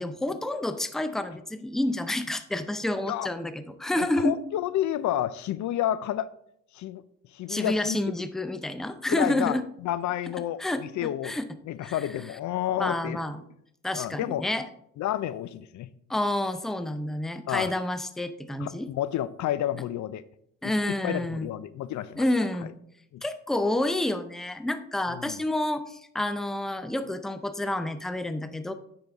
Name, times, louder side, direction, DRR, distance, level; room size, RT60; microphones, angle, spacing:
voice 1, 0.0-4.4 7.5-9.6 10.6-11.5 11.8-11.9 12.8-13.4 13.8-14.7 16.1-18.9 20.6-21.5 22.2-22.7 23.2-28.7, left 1 dB, ahead, 11 dB, 0.5 m, -29 dB
voice 2, 4.0-6.3 6.7-7.0 7.3-8.0 9.1-11.4 11.7-13.2 13.9-14.4 15.0-15.9 17.5-17.7 18.6-20.2 20.6-22.2 23.1-23.2 25.1-25.4, left 12 dB, 70° left, 16 dB, 0.5 m, -30 dB
8.5 x 6.1 x 3.5 m, 0.74 s
cardioid pair, 90°, 30 cm